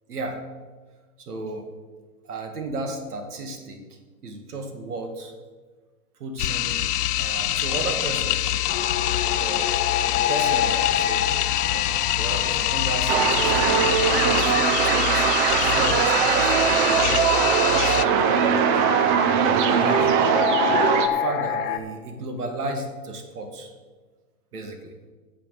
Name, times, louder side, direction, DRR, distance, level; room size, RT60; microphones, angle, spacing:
voice 1, 0.1-0.4 1.2-1.7 2.3-5.3 6.2-6.8 7.1-8.6 9.3-9.6 10.1-13.7 14.3-17.2 17.7-18.7 19.4-20.6 21.0-23.7 24.5-24.9, right 2 dB, 75° right, 5 dB, 2.0 m, -34 dB
sound 1, 6.4-18.0, left 13 dB, 85° left, 0.6 m, -25 dB
sound 2, 8.7-21.8, left 10 dB, 20° left, 0.7 m, -29 dB
sound 3, 13.1-21.1, right 7 dB, 35° right, 0.8 m, -21 dB
10.0 x 7.1 x 6.9 m, 1.4 s
hypercardioid pair, 130°, 45 cm